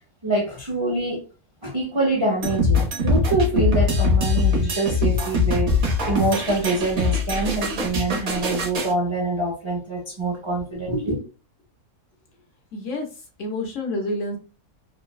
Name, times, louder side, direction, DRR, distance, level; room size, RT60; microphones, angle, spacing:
voice 1, 0.2-1.2 1.6-11.2, right 2 dB, 40° right, 0.4 m, -25 dB
sound 1, 2.4-8.9, left 3 dB, 55° right, 0.9 m, -22 dB
voice 2, 12.7-14.4, left 2 dB, 65° left, 0.8 m, -29 dB
3.1 x 2.1 x 2.2 m
omnidirectional pair, 1.6 m